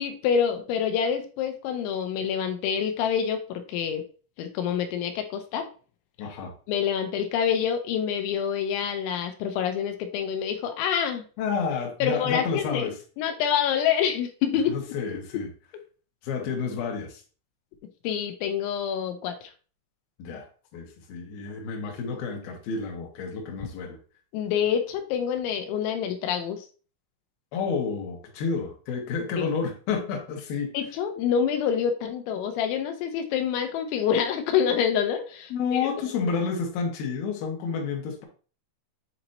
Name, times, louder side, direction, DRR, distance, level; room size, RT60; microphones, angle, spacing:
voice 1, 0.0-4.0 4.4-5.7 6.7-11.2 12.0-12.9 13.2-14.7 18.0-19.5 24.3-26.7 29.4-29.5 30.7-35.9, left 8 dB, 90° left, 3.0 m, -27 dB
voice 2, 6.2-6.5 11.4-13.0 14.7-15.5 16.2-17.2 20.2-20.5 20.7-24.0 27.5-30.7 35.5-38.2, left 5 dB, 65° left, 2.8 m, -30 dB
7.7 x 2.9 x 4.1 m
omnidirectional pair, 5.2 m